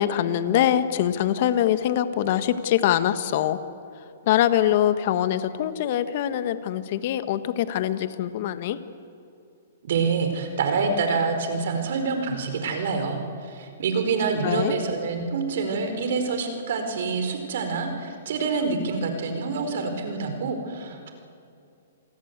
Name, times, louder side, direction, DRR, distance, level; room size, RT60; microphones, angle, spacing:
voice 1, 0.0-3.6 4.3-8.8 14.4-14.8, left 11 dB, 50° left, 11 dB, 1.5 m, -23 dB
voice 2, 9.8-21.1, right 4 dB, 65° right, 6 dB, 4.7 m, -26 dB
28.5 x 20.0 x 8.2 m, 2.6 s
hypercardioid pair, 135°, 0 cm